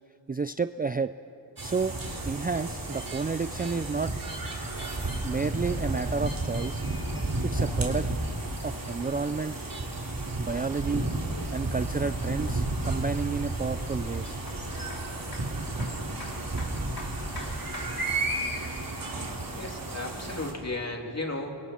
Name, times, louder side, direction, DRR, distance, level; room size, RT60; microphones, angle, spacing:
voice 1, 0.3-1.1 1.6-2.0 2.2-4.1 5.2-6.8 7.4-8.1 8.6-9.6 10.4-11.1 11.5-14.4, right 4 dB, 20° right, 11 dB, 0.4 m, -30 dB
sound 1, 1.6-20.5, right 2 dB, 50° right, 3.4 m, -32 dB
sound 2, 4.8-18.1, left 2 dB, 60° left, 6.4 m, -50 dB
voice 2, 19.5-21.5, left 2 dB, 35° left, 1 dB, 3.0 m, -35 dB
29.0 x 24.5 x 4.5 m, 2.9 s
wide cardioid pair, 65°, 44 cm